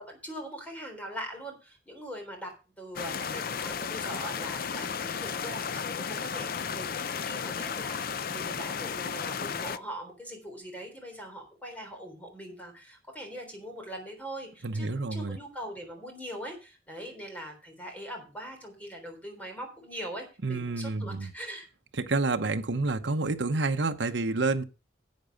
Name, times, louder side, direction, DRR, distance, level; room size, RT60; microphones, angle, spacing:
voice 1, 0.0-21.7, equal, 10° left, 3.6 m, -42 dB
sound 1, 3.0-9.8, left 6 dB, 50° left, 0.5 m, -34 dB
voice 2, 14.6-15.4 20.4-21.3 21.9-24.6, right 3 dB, 70° right, 0.9 m, -29 dB
10.5 x 8.1 x 5.1 m
head